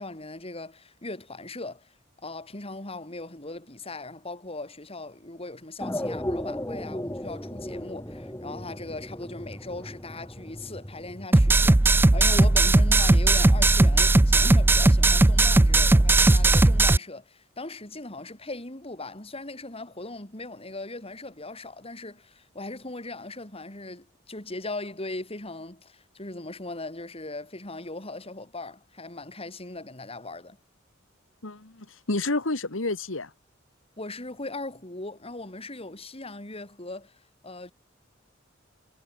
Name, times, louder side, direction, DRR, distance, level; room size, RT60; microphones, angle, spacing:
voice 1, 0.0-1.9 2.2-30.6 34.0-37.7, left 2 dB, 30° left, 4.6 m, -39 dB
sound 1, 5.8-11.3, left 1 dB, 15° left, 4.7 m, -35 dB
sound 2, 11.3-17.0, right 2 dB, 10° right, 0.3 m, -18 dB
voice 2, 31.4-33.3, left 2 dB, 85° left, 2.2 m, -29 dB
head